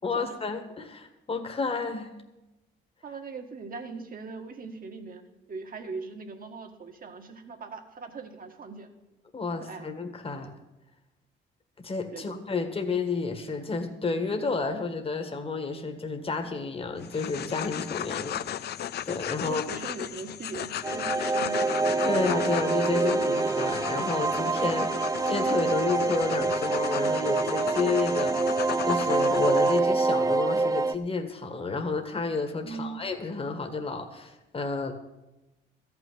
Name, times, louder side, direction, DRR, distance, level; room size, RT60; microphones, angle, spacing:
voice 1, 0.0-2.1 9.3-10.5 11.8-18.8 19.0-19.6 22.0-34.9, left 4 dB, 30° left, 6 dB, 1.6 m, -31 dB
voice 2, 3.0-8.9 9.6-9.9 12.1-12.4 19.4-21.7 32.6-33.0, right 4 dB, 45° right, 5 dB, 1.8 m, -40 dB
sound 1, 17.0-29.8, left 10 dB, 55° left, 0.5 m, -35 dB
sound 2, 20.8-30.9, right 3 dB, 15° right, 0.5 m, -26 dB
14.0 x 6.1 x 9.9 m, 1.0 s
cardioid pair, 90°, 20 cm